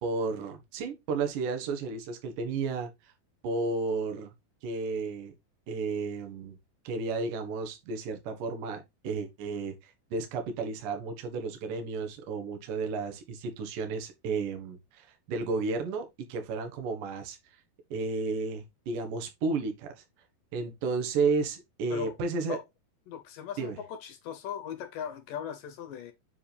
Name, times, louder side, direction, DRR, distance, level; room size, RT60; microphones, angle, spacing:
voice 1, 0.0-3.1 3.4-4.3 4.6-5.3 5.7-6.6 6.8-17.4 17.9-20.0 20.5-22.6 23.6-23.8, right 4 dB, 65° right, 2.8 m, -32 dB
voice 2, 23.1-26.1, left 8 dB, 70° left, 2.3 m, -39 dB
7.5 x 4.8 x 3.3 m
omnidirectional pair, 4.4 m